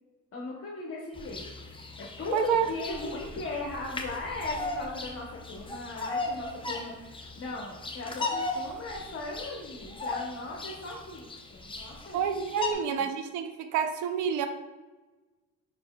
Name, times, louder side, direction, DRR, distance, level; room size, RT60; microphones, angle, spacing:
voice 1, 0.3-1.5 2.0-12.2 12.9-13.0, left 2 dB, 50° left, -3 dB, 0.8 m, -38 dB
Bird vocalization bird call bird song, 1.1-12.7, left 3 dB, 15° left, 0.6 m, -37 dB
voice 2, 2.3-2.7 12.1-14.5, right 7 dB, 75° right, 8 dB, 0.5 m, -28 dB
5.2 x 4.2 x 2.2 m, 1.2 s
cardioid pair, 90°, 30 cm